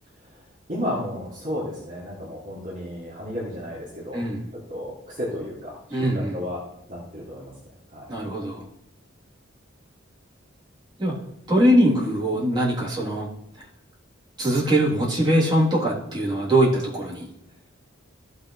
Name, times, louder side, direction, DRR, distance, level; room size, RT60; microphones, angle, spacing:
voice 1, 0.7-4.2 4.7-6.6 6.9-7.5 7.9-8.1, left 1 dB, 40° right, -6 dB, 2.8 m, -33 dB
voice 2, 5.9-6.4 8.1-8.7 11.0-11.2 11.5-13.3 14.4-17.3, right 1 dB, 20° right, -7 dB, 3.4 m, -22 dB
15.5 x 6.6 x 3.3 m, 0.78 s
head